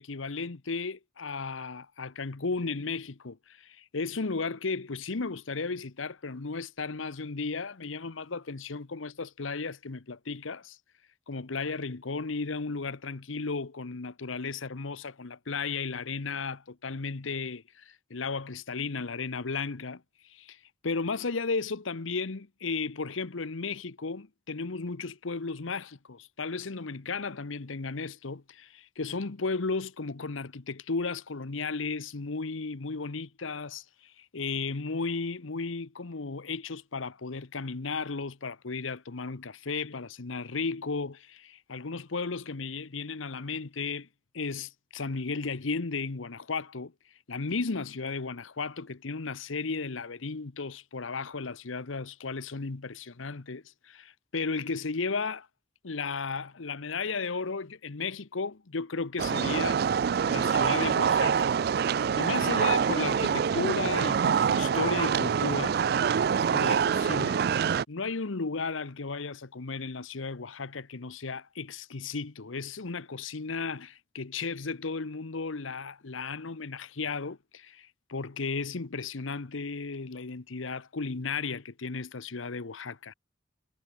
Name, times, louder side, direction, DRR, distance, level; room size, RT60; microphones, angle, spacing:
voice 1, 0.0-10.8 11.3-20.0 20.3-20.6 20.8-44.1 44.3-46.9 47.3-55.5 55.8-59.8 60.3-61.5 62.1-65.8 66.5-67.4 67.9-83.1, left 4 dB, 90° left, 1.0 m, -34 dB
sound 1, 59.2-67.8, right 7 dB, 50° right, 0.3 m, -25 dB
head